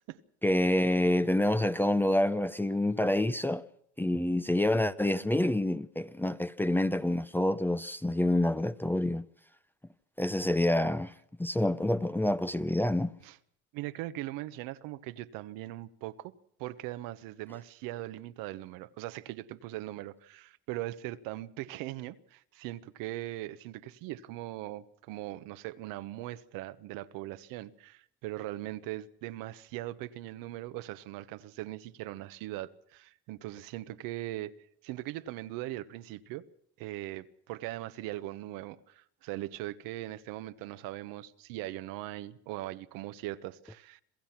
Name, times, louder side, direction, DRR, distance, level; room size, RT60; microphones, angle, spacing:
voice 1, 0.4-3.6 4.0-9.2 10.2-11.1 11.4-13.1, left 1 dB, 5° left, 0.8 m, -27 dB
voice 2, 13.7-16.3 16.6-34.5 34.8-36.5 36.8-44.0, right 15 dB, 70° right, 1.2 m, -40 dB
27.5 x 16.0 x 6.0 m
supercardioid pair, 90°, 35 cm